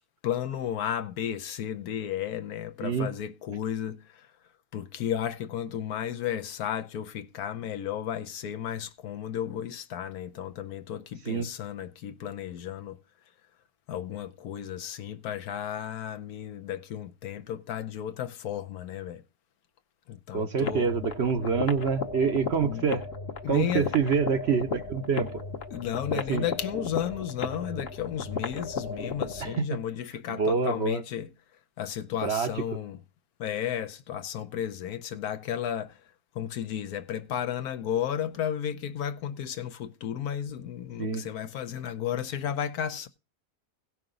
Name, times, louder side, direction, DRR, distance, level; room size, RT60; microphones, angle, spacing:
voice 1, 0.2-4.3 4.7-13.0 13.9-19.2 20.1-20.9 22.6-22.9 23.4-23.9 25.7-31.3 31.8-33.0 33.4-36.0 36.3-43.1, left 9 dB, 75° left, 1.2 m, -33 dB
voice 2, 20.3-23.0 23.5-25.4 26.3-26.4 29.4-29.7 30.3-31.0 32.2-32.5 41.0-41.3, right 6 dB, 55° right, 0.9 m, -26 dB
sound 1, 20.6-29.6, left 4 dB, 45° left, 1.1 m, -35 dB
17.0 x 5.9 x 3.7 m
omnidirectional pair, 1.6 m